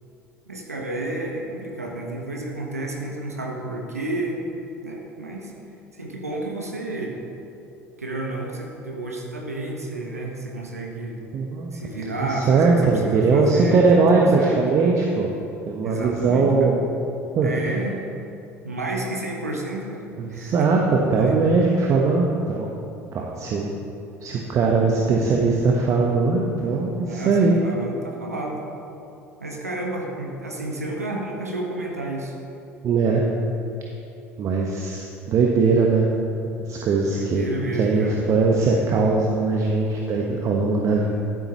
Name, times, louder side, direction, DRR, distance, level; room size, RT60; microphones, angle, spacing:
voice 1, 0.5-4.4 4.8-5.5 5.9-7.1 8.0-11.2 11.7-14.6 15.8-16.7 17.4-18.0 18.6-20.0 20.3-20.7 21.2-21.3 27.0-28.6 29.4-32.4 37.1-38.2, right 2 dB, 85° right, -1 dB, 1.3 m, -31 dB
voice 2, 11.3-11.7 12.3-15.3 15.7-16.8 17.3-17.5 20.2-22.7 23.1-23.7 24.2-27.6 32.8-33.2 34.4-36.1 36.7-37.5 37.8-41.1, right 4 dB, 40° right, -1 dB, 1.2 m, -20 dB
14.0 x 12.0 x 3.1 m, 2.7 s
figure-of-eight pair, 65°, 8 cm